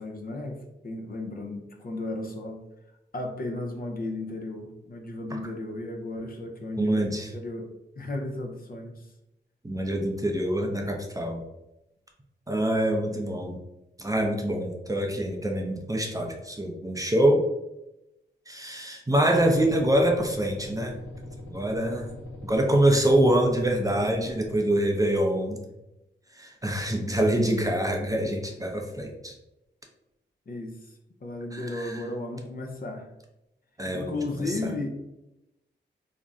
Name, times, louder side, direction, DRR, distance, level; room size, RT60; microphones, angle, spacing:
voice 1, 0.0-2.6 3.1-9.1 12.7-13.1 30.5-33.1 33.9-35.0, left 2 dB, 50° left, 2 dB, 0.6 m, -35 dB
voice 2, 6.8-7.3 9.6-11.4 12.5-13.6 14.0-17.5 18.5-21.0 21.5-22.1 22.4-25.6 26.3-29.3 31.5-32.0 33.8-34.7, right 1 dB, 15° right, 2 dB, 0.5 m, -25 dB
sound 1, 19.3-24.6, left 1 dB, 85° left, 0.6 m, -42 dB
2.5 x 2.0 x 3.5 m, 0.90 s
cardioid pair, 60°, 20 cm